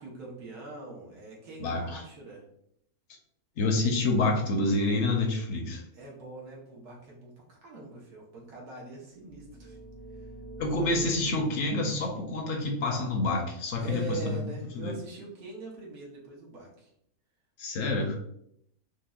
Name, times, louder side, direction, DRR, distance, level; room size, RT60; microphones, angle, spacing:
voice 1, 0.0-2.4 5.9-9.8 10.1-10.3 13.8-16.9, right 3 dB, 90° right, -3 dB, 1.4 m, -43 dB
voice 2, 1.6-2.0 3.6-5.8 10.6-14.4 14.7-14.9 17.6-18.2, left 2 dB, 65° left, 3 dB, 0.8 m, -28 dB
sound 1, 9.2-14.8, right 1 dB, 60° right, 0.8 m, -47 dB
5.1 x 2.0 x 2.3 m, 0.74 s
omnidirectional pair, 1.6 m